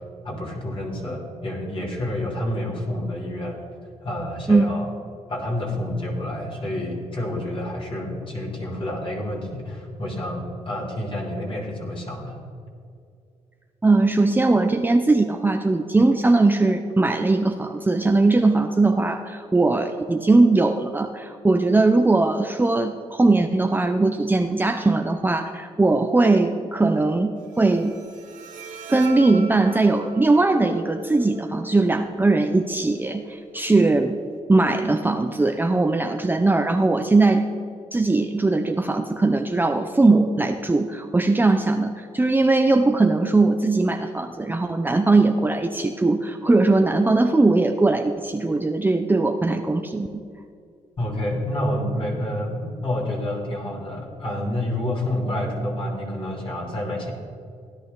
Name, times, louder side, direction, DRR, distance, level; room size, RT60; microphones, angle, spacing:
voice 1, 0.2-3.6 4.0-4.9 5.3-12.4 51.0-57.1, left 1 dB, 40° left, -2 dB, 3.1 m, -28 dB
voice 2, 13.8-28.0 28.9-34.2 34.5-37.5 37.9-50.2, right 3 dB, 15° right, 5 dB, 0.7 m, -20 dB
Bowed string instrument, 27.4-34.4, right 3 dB, 80° right, 1.7 m, -41 dB
16.0 x 10.0 x 3.9 m, 2.4 s
cardioid pair, 75°, 13 cm